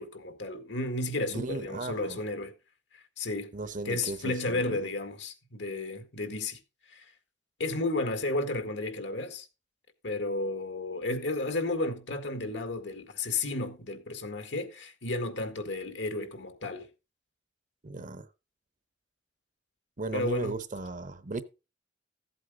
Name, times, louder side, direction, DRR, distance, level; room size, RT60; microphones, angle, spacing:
voice 1, 0.0-2.5 3.2-3.5 3.9-6.6 6.9-7.0 7.6-9.5 10.0-16.9 20.1-20.5, left 2 dB, 75° left, 2.0 m, -32 dB
voice 2, 1.3-2.2 3.5-4.9 17.8-18.3 20.0-21.4, right 3 dB, 45° right, 0.9 m, -36 dB
15.0 x 8.1 x 3.8 m
head